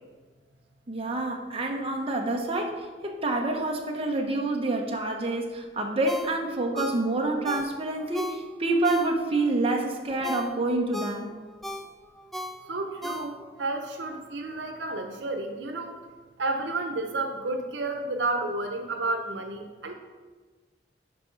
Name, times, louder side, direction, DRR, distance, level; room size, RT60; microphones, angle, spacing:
voice 1, 0.9-11.3, right 2 dB, 30° right, 1 dB, 0.8 m, -27 dB
Ringtone, 6.1-9.5 9.9-13.7 14.1-14.2, left 1 dB, ahead, 0.4 m, -38 dB
voice 2, 12.7-16.0 16.4-19.9, right 2 dB, 80° right, 5 dB, 0.9 m, -31 dB
10.5 x 4.8 x 3.9 m, 1.4 s
head